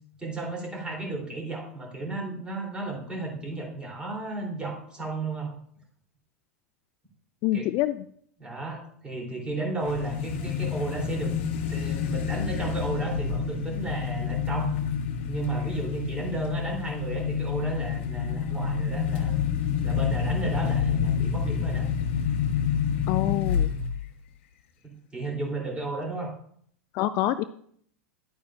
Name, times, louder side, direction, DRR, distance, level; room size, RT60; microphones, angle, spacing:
voice 1, 0.2-5.5 7.5-7.7 8.4-11.3 11.7-14.7 15.3-19.4 19.8-21.8 25.1-26.3, right 3 dB, 15° right, -1 dB, 3.2 m, -33 dB
voice 2, 7.4-8.0 23.1-23.7 26.9-27.4, left 14 dB, 40° left, 13 dB, 0.4 m, -26 dB
sound 1, 9.8-24.1, left 7 dB, 55° left, 1.3 m, -28 dB
11.0 x 8.5 x 2.5 m, 0.63 s
figure-of-eight pair, 90°, 8 cm